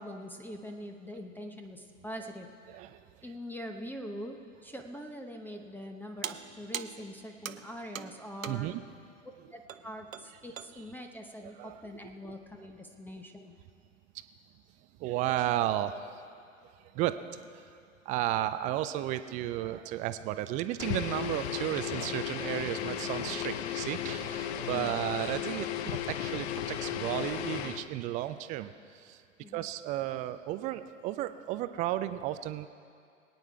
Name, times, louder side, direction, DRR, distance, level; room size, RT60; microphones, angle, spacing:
voice 1, 0.0-2.5 3.2-8.7 9.5-13.6 24.7-25.0 29.4-29.7, equal, 5° left, 4 dB, 0.9 m, -43 dB
voice 2, 2.7-3.0 8.5-8.8 11.4-11.9 15.0-16.2 16.9-17.6 18.1-29.2 29.5-32.7, right 13 dB, 20° right, 12 dB, 0.3 m, -33 dB
sound 1, 6.2-8.9 9.7-9.9 10.1-10.8, right 8 dB, 85° right, 0.7 m, -41 dB
sound 2, 20.8-27.9, left 10 dB, 55° left, 0.8 m, -35 dB
22.0 x 9.4 x 4.7 m, 2.3 s
figure-of-eight pair, 95°, 39 cm